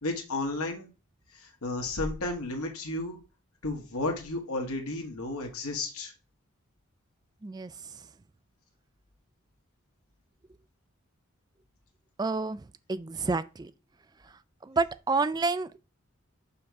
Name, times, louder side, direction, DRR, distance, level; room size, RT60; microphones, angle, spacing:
voice 1, 0.0-0.9 1.3-3.2 3.6-6.1, left 2 dB, 85° left, 1.4 m, -33 dB
voice 2, 12.2-13.7 14.6-15.8, right 3 dB, 20° right, 0.3 m, -29 dB
5.6 x 5.4 x 4.6 m
head